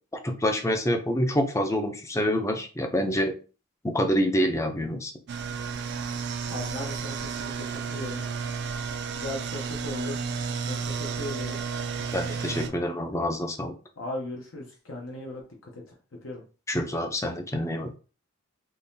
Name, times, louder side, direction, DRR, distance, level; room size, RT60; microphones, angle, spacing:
voice 1, 0.2-3.3 3.8-5.1 12.1-13.7 16.7-17.9, equal, 15° left, 5 dB, 0.5 m, -26 dB
sound 1, 5.3-12.7, right 5 dB, 50° right, 0.4 m, -32 dB
voice 2, 6.5-8.2 9.1-10.2 10.7-11.6 14.0-15.9 16.2-16.4, left 2 dB, 65° left, -1 dB, 0.8 m, -37 dB
3.8 x 3.0 x 2.7 m, 0.35 s
head